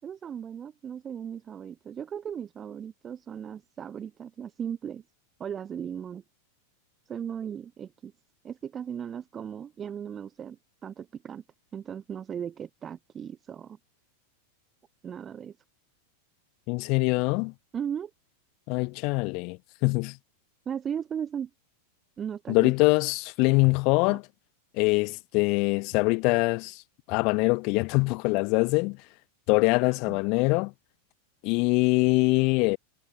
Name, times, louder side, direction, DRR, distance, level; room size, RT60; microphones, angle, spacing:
voice 1, 0.0-5.0 5.4-6.2 7.1-8.1 8.4-11.4 11.7-13.8 15.0-15.5 17.7-18.1 20.6-21.5 22.2-22.7 24.1-24.2 30.1-30.2, right 8 dB, 25° right, 6.9 m, -37 dB
voice 2, 16.7-17.5 18.7-20.2 22.5-24.2 24.8-26.8 27.1-29.0 29.5-30.7 31.4-32.8, left 29 dB, 45° left, 0.4 m, -24 dB
figure-of-eight pair, 90°, 0 cm